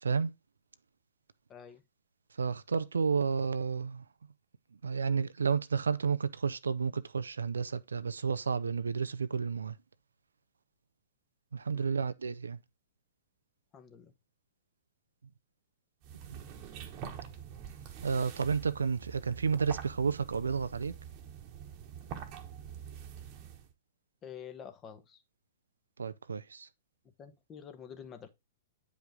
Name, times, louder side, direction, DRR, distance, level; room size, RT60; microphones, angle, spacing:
voice 1, 1.5-1.8 11.7-12.0 13.7-14.1 24.2-25.2 27.2-28.3, left 8 dB, 25° left, 1.1 m, -48 dB
voice 2, 2.4-4.0 4.8-9.8 11.5-12.6 16.3-16.4 18.0-21.0 26.0-26.7, right 5 dB, 70° right, 0.5 m, -31 dB
sound 1, 16.0-23.7, right 8 dB, 35° right, 1.2 m, -45 dB
9.1 x 5.1 x 3.6 m
figure-of-eight pair, 110°, 0 cm